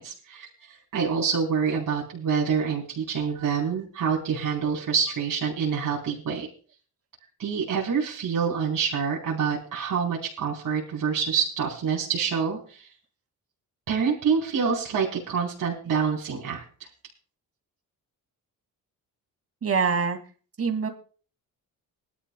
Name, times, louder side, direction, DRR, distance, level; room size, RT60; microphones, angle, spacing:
voice 1, 0.0-6.5 7.4-12.9 13.9-16.6, right 6 dB, 60° right, -4 dB, 4.4 m, -27 dB
voice 2, 19.6-20.2 20.6-20.9, right 5 dB, 40° right, 4 dB, 2.9 m, -24 dB
21.0 x 12.5 x 2.4 m, 0.40 s
cardioid pair, 90°, 36 cm